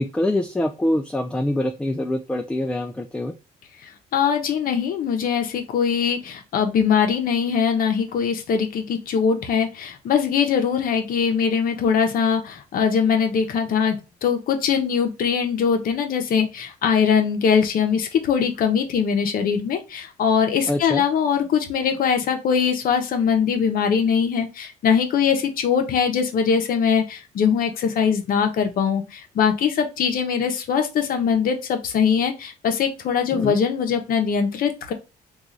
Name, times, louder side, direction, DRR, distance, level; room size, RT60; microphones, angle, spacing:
voice 1, 0.0-3.3 20.7-21.0 33.3-33.6, left 1 dB, 5° left, 4 dB, 0.3 m, -24 dB
voice 2, 3.8-34.9, left 7 dB, 60° left, 5 dB, 0.8 m, -22 dB
3.0 x 2.4 x 3.8 m, 0.29 s
cardioid pair, 110°, 17 cm